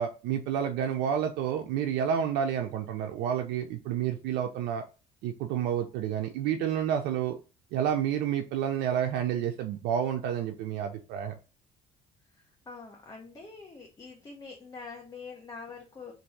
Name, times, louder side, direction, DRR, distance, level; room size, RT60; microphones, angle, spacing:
voice 1, 0.0-4.8 5.2-7.4 7.7-11.3, right 9 dB, 90° right, 4 dB, 0.4 m, -29 dB
voice 2, 12.2-16.1, left 4 dB, 20° left, 0 dB, 0.7 m, -45 dB
2.7 x 2.5 x 3.1 m, 0.32 s
cardioid pair, 110°, 17 cm